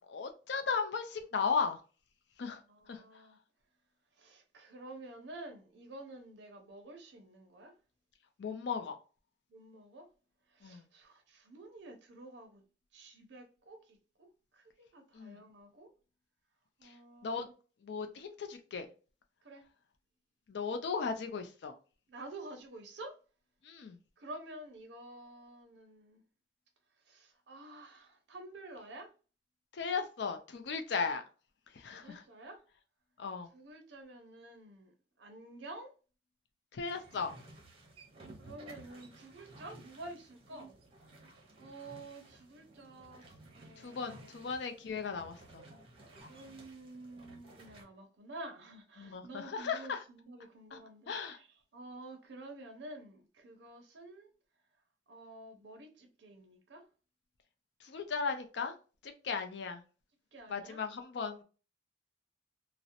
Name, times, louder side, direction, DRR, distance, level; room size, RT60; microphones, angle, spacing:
voice 1, 0.1-1.8 2.4-2.6 2.9-3.2 8.4-9.0 10.6-10.8 15.1-15.4 16.8-16.9 17.2-17.5 17.8-18.9 20.5-21.7 23.6-24.0 29.7-31.2 31.7-32.2 33.2-33.5 36.7-37.3 43.8-45.7 49.0-50.0 50.7-50.8 51.1-51.4 57.8-58.7 59.0-59.8 60.5-61.4, left 5 dB, 65° left, 0.4 m, -36 dB
voice 2, 2.7-3.4 4.2-7.7 9.5-10.1 10.5-12.6 12.9-14.3 14.5-15.9 16.8-17.5 19.4-19.6 22.1-23.1 24.2-26.2 27.1-29.1 31.9-32.6 33.5-35.9 38.4-44.4 46.3-54.3 55.1-56.8 60.3-60.8, right 2 dB, 65° right, 0.5 m, -50 dB
sound 1, 36.9-47.8, right 2 dB, 30° right, 0.6 m, -55 dB
2.7 x 2.0 x 2.5 m
head